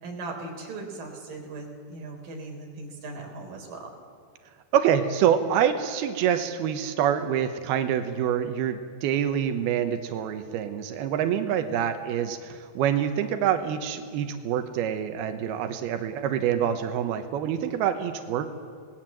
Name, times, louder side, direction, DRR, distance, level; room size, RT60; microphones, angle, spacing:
voice 1, 0.0-3.9 11.7-11.8, right 3 dB, 65° right, 1 dB, 5.4 m, -38 dB
voice 2, 4.7-18.5, right 9 dB, 90° right, 8 dB, 3.0 m, -26 dB
25.0 x 19.5 x 7.5 m, 2.1 s
omnidirectional pair, 4.3 m